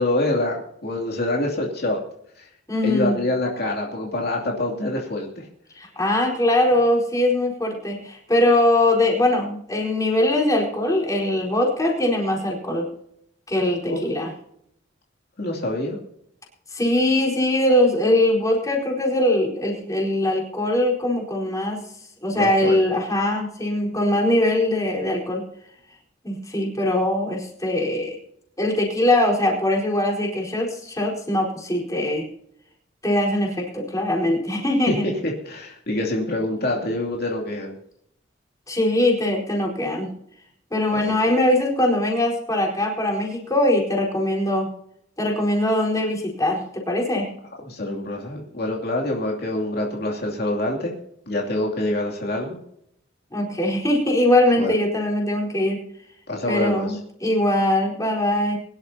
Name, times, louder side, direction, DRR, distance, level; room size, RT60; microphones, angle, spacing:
voice 1, 0.0-2.0 2.4-2.5 2.8-5.5 13.9-14.0 15.4-16.0 22.3-22.8 34.9-37.8 40.9-41.3 47.6-50.9 51.3-52.6 54.6-54.7 56.3-57.0, left 1 dB, 55° left, -1 dB, 2.7 m, -26 dB
voice 2, 2.7-3.2 5.8-12.9 13.5-14.3 16.7-21.8 22.2-25.4 26.2-28.2 28.6-32.3 33.0-35.0 38.7-40.1 40.7-44.7 45.2-47.3 53.3-55.8 56.5-58.6, left 1 dB, 20° left, -2 dB, 4.4 m, -21 dB
23.0 x 11.5 x 2.8 m, 0.72 s
head